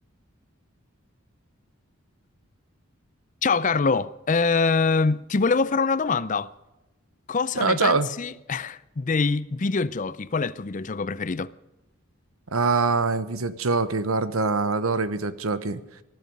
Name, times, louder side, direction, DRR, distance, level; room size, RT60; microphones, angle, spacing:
voice 1, 3.4-6.5 7.3-11.5, left 4 dB, 35° left, 0.5 m, -24 dB
voice 2, 7.5-8.1 12.5-15.8, right 4 dB, 85° right, 1.1 m, -24 dB
20.0 x 12.0 x 5.3 m
head